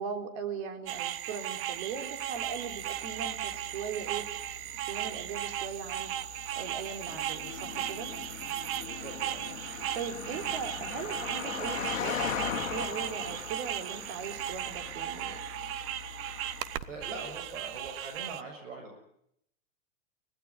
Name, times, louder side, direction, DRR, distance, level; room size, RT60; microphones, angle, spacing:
voice 1, 0.0-4.3 4.9-6.1 6.5-8.1 9.9-15.4, right 6 dB, 50° right, 7 dB, 4.1 m, -39 dB
sound 1, 0.9-18.4, right 13 dB, 35° right, 1.0 m, -37 dB
Car passing by, 2.0-17.7, left 8 dB, 80° left, 1.7 m, -41 dB
sound 2, 7.1-12.4, left 8 dB, 30° left, 3.5 m, -48 dB
voice 2, 8.8-9.4 16.9-19.0, right 3 dB, 70° right, 3 dB, 7.3 m, -42 dB
25.0 x 18.5 x 9.7 m, 0.75 s
hypercardioid pair, 120°, 38 cm